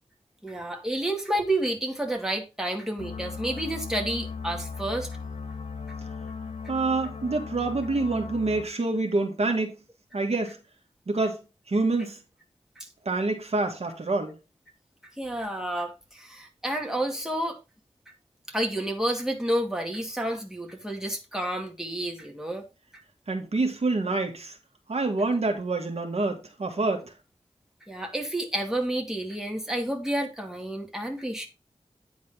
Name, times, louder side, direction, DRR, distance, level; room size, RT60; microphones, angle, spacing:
voice 1, 0.4-5.1 12.8-12.9 15.2-17.6 18.5-22.6 27.9-31.5, right 1 dB, 5° right, 2.4 m, -30 dB
sound 1, 3.0-8.6, left 5 dB, 75° left, 1.2 m, -37 dB
voice 2, 6.7-9.7 10.1-10.6 11.1-11.4 11.7-12.2 13.1-14.4 23.3-24.6 24.9-27.1, right 3 dB, 70° right, 1.9 m, -27 dB
9.6 x 4.0 x 5.1 m
wide cardioid pair, 60°, 11 cm